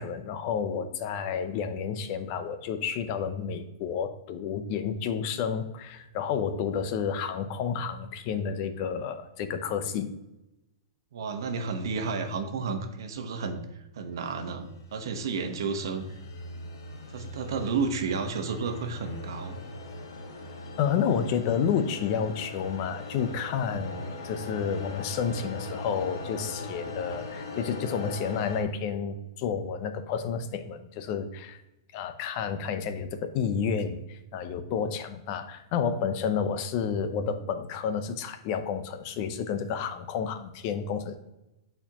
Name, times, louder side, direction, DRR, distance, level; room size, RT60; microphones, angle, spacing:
voice 1, 0.0-10.1 20.8-31.6 31.9-41.2, left 7 dB, 35° left, 9 dB, 0.6 m, -30 dB
voice 2, 11.1-13.6 13.9-16.2 17.1-19.6, right 5 dB, 65° right, 6 dB, 1.0 m, -32 dB
sound 1, 14.5-28.6, left 2 dB, 75° left, 1.4 m, -40 dB
8.3 x 4.4 x 2.9 m, 0.94 s
hypercardioid pair, 160°, 2 cm